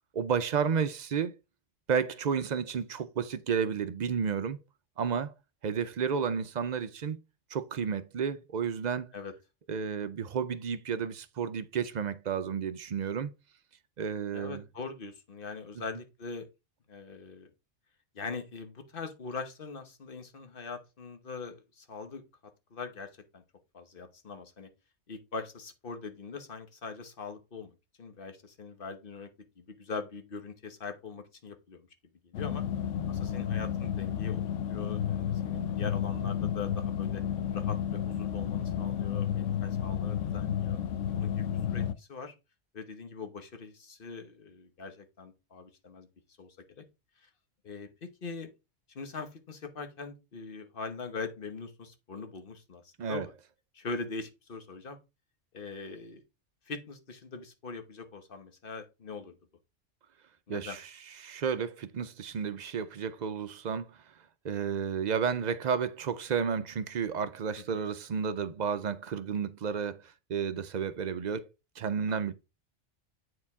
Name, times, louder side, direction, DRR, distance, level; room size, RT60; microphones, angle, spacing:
voice 1, 0.1-1.3 1.9-4.6 5.0-5.3 5.6-7.2 7.5-9.1 9.7-13.3 14.0-14.6 53.0-53.3 60.5-60.9 61.2-64.0 64.4-70.0 70.3-71.5 71.8-72.3, right 6 dB, 55° right, 0.5 m, -31 dB
voice 2, 14.3-16.5 16.9-17.5 18.1-22.2 22.7-23.4 23.7-24.7 25.1-29.3 29.6-31.9 32.2-32.7 33.1-34.4 34.7-37.2 37.5-40.8 41.1-42.3 42.7-46.1 46.4-46.9 47.2-47.3 47.6-48.5 48.9-53.3 53.7-55.0 55.5-56.2 56.7-59.4 60.5-60.8 67.7-67.8 72.1-72.3, left 4 dB, 50° left, 1.2 m, -42 dB
sound 1, 32.3-41.9, left 9 dB, 80° left, 0.9 m, -32 dB
8.5 x 4.6 x 3.5 m
omnidirectional pair, 1.3 m